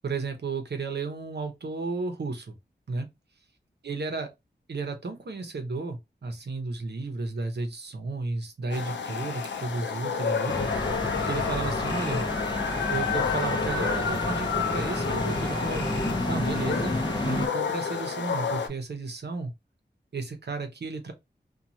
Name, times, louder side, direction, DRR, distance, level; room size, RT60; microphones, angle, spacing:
voice 1, 0.0-2.6 2.9-3.1 3.8-4.3 4.7-10.7 11.2-12.2 12.9-15.9 16.3-17.0 17.2-19.5 20.1-21.1, right 3 dB, 70° right, 0.7 m, -33 dB
sound 1, 8.7-18.7, left 6 dB, 85° left, 0.5 m, -30 dB
sound 2, 10.5-17.5, left 1 dB, 25° left, 0.6 m, -30 dB
2.9 x 2.3 x 2.6 m
wide cardioid pair, 60°, 18 cm